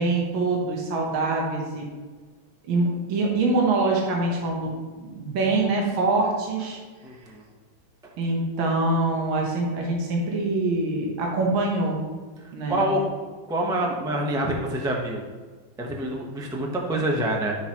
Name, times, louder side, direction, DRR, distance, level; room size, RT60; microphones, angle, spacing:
voice 1, 0.0-1.9 2.7-6.8 8.2-12.0 12.5-12.9, right 2 dB, 75° right, -1 dB, 1.9 m, -24 dB
voice 2, 7.0-7.4 12.4-13.0 13.5-15.3 15.8-17.6, right 1 dB, 5° right, -1 dB, 0.3 m, -26 dB
11.0 x 6.1 x 3.0 m, 1.4 s
omnidirectional pair, 2.3 m